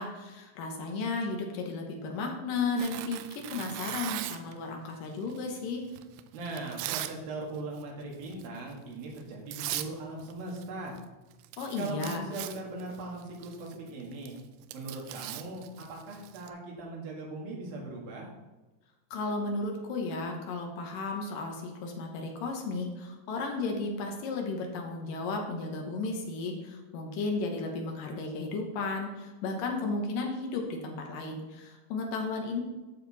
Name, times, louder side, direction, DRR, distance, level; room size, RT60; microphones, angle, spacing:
voice 1, 0.0-5.8 11.6-12.3 19.1-32.6, left 3 dB, 70° left, 2 dB, 2.3 m, -34 dB
Tearing, 2.8-4.5 5.3-7.2 7.5-7.8 8.2-8.5 9.2-9.3 9.5-9.9 10.2-11.1 11.3-16.5, right 14 dB, 90° right, 2.8 m, -39 dB
voice 2, 6.3-10.9 11.8-14.4 14.7-18.3, right 2 dB, 65° right, -2 dB, 3.1 m, -39 dB
9.8 x 6.7 x 4.1 m, 1.2 s
omnidirectional pair, 5.0 m